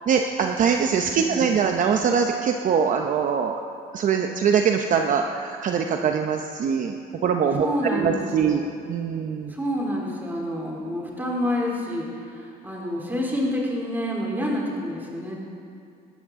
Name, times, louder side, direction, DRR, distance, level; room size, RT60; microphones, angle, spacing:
voice 1, 0.1-3.6 3.9-7.0 7.2-8.6 8.9-9.5, right 6 dB, 50° right, 4 dB, 0.8 m, -23 dB
voice 2, 1.2-1.6 7.6-8.7 9.5-15.4, equal, 10° right, -3 dB, 3.5 m, -28 dB
19.5 x 12.5 x 3.7 m, 2.4 s
cardioid pair, 110°, 17 cm